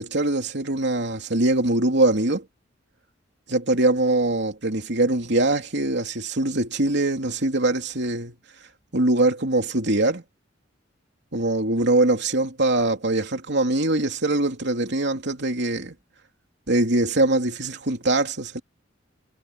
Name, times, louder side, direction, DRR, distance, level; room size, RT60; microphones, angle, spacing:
voice 1, 0.0-2.4 3.5-8.3 8.9-10.2 11.3-15.9 16.7-18.6, right 2 dB, 60° right, 3.2 m, -22 dB
head